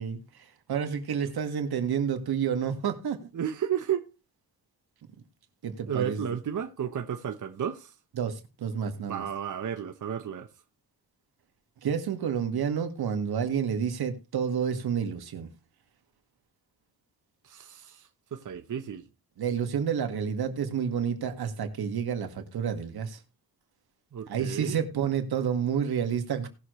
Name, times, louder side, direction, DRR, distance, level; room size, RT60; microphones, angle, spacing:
voice 1, 0.0-3.2 5.6-6.3 8.2-9.2 11.8-15.5 19.4-23.2 24.3-26.5, right 7 dB, 80° right, 1.9 m, -29 dB
voice 2, 3.3-4.1 5.9-8.0 9.0-10.5 17.4-19.1 24.1-24.8, right 9 dB, 55° right, 1.0 m, -33 dB
18.5 x 6.5 x 3.1 m
cardioid pair, 100°, 37 cm